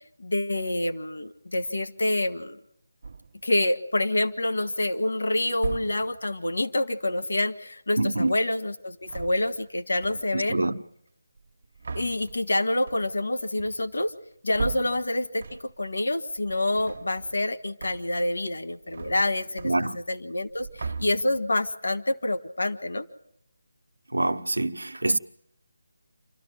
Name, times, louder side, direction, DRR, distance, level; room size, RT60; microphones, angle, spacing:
voice 1, 0.2-2.6 3.4-10.6 11.9-14.1 14.4-23.1, left 1 dB, 70° left, 1.6 m, -27 dB
door wood heavy open close soft slide thuds roomy, 3.0-3.5 4.3-4.8 5.5-6.3 8.9-9.7 10.0-10.5 11.4-15.9 16.3-17.5 17.8-18.3 18.6-20.2 20.4-21.6, right 4 dB, 55° right, 1.0 m, -38 dB
voice 2, 8.0-8.4 10.3-10.8 19.6-20.0 24.1-25.2, right 2 dB, 85° right, 1.0 m, -25 dB
28.0 x 13.0 x 8.9 m
figure-of-eight pair, 155°, 0 cm